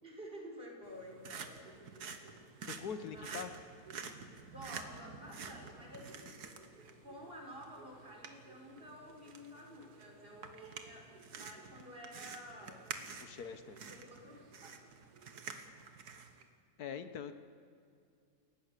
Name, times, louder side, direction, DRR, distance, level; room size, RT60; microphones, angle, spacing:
voice 1, 0.0-1.7 2.5-2.7 3.1-3.5 4.5-6.4 6.9-12.9 13.8-14.9, equal, 35° right, 0 dB, 4.7 m, -51 dB
sound 1, 0.8-16.4, right 5 dB, 90° right, 2.0 m, -49 dB
voice 2, 2.6-3.5 13.2-13.8 16.8-17.4, left 7 dB, 75° left, 10 dB, 1.6 m, -43 dB
29.5 x 17.5 x 6.8 m, 2.4 s
omnidirectional pair, 1.6 m